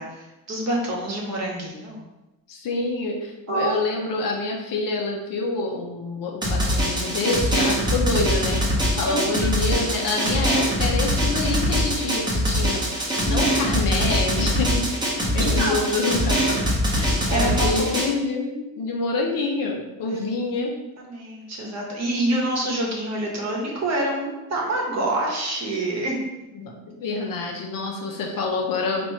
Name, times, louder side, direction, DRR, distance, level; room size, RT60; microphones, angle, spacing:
voice 1, 0.0-2.1 3.5-3.8 9.0-9.5 13.2-13.5 15.4-15.8 17.3-17.8 20.1-20.2 21.0-26.2, right 1 dB, 45° right, -2 dB, 1.0 m, -27 dB
voice 2, 2.5-8.6 8.9-16.6 16.9-20.7 26.5-26.7 27.0-29.1, left 3 dB, 65° left, 0 dB, 0.8 m, -27 dB
Drum, 6.4-18.0, equal, 10° right, 0.8 m, -23 dB
2.9 x 2.6 x 4.4 m, 1.0 s
cardioid pair, 135°, 37 cm